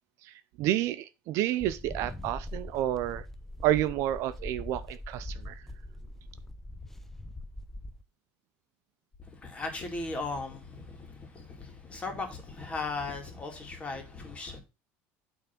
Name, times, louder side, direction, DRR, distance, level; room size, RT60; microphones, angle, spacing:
voice 1, 0.2-3.2 3.6-5.6, right 13 dB, 55° right, 0.6 m, -30 dB
sound 1, 1.6-8.0, left 1 dB, 5° left, 0.5 m, -42 dB
voice 2, 9.2-14.6, left 3 dB, 20° left, 2.2 m, -37 dB
8.6 x 3.5 x 6.0 m
cardioid pair, 140°, 6 cm